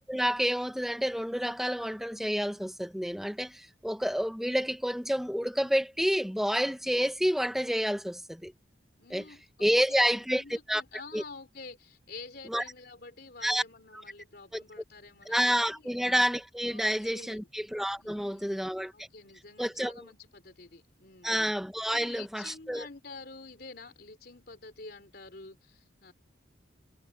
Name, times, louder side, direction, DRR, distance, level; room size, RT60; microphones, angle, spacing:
voice 1, 0.1-8.5 9.1-9.2 9.6-10.8 11.1-11.2 12.5-12.6 13.4-13.6 14.5-14.6 15.3-18.9 19.6-20.1 21.2-22.9, equal, ahead, 1.1 m, -29 dB
voice 2, 9.0-15.9 16.6-17.5 18.0-18.6 18.9-21.4 21.9-26.1, left 3 dB, 55° left, 3.3 m, -48 dB
head